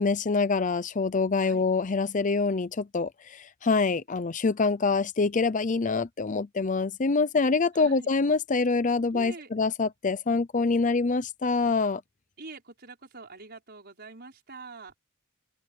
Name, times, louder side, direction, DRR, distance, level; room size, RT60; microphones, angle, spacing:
voice 1, 0.0-12.0, left 4 dB, 35° left, 0.6 m, -25 dB
voice 2, 7.7-8.1 9.1-9.5 12.4-14.9, right 3 dB, 50° right, 5.7 m, -44 dB
open air
head